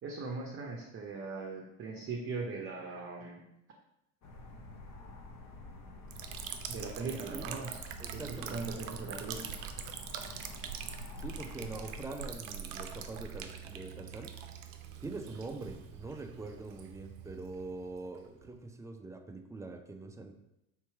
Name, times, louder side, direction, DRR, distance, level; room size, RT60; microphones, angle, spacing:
voice 1, 0.0-3.4 6.7-7.8 8.1-9.4, right 4 dB, 35° right, -1 dB, 0.7 m, -40 dB
sound 1, 4.2-12.1, left 1 dB, 45° left, 0.8 m, -49 dB
Liquid, 6.1-18.6, right 7 dB, 80° right, 0.6 m, -44 dB
voice 2, 7.1-7.7 8.0-8.6 11.2-14.4 15.0-20.3, right 3 dB, 10° right, 5 dB, 0.4 m, -44 dB
3.6 x 2.9 x 4.7 m, 0.87 s
hypercardioid pair, 75°, 38 cm